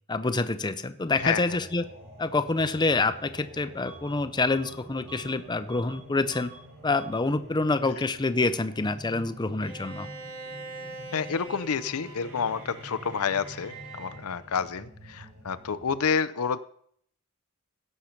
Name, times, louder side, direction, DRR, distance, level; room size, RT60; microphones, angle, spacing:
voice 1, 0.1-1.9 2.2-6.5 6.8-10.1, left 3 dB, 20° left, 11 dB, 0.6 m, -27 dB
sound 1, 1.1-16.1, right 1 dB, 55° right, 4.6 m, -48 dB
Bus / Alarm, 3.8-4.2 4.5-6.0 6.3-6.6 6.9-7.3, right 5 dB, 85° right, 4.7 m, -48 dB
Bowed string instrument, 9.6-14.3, right 2 dB, 70° right, 2.6 m, -43 dB
voice 2, 11.1-16.6, left 6 dB, 75° left, 14 dB, 0.6 m, -29 dB
16.5 x 6.6 x 5.8 m, 0.64 s
head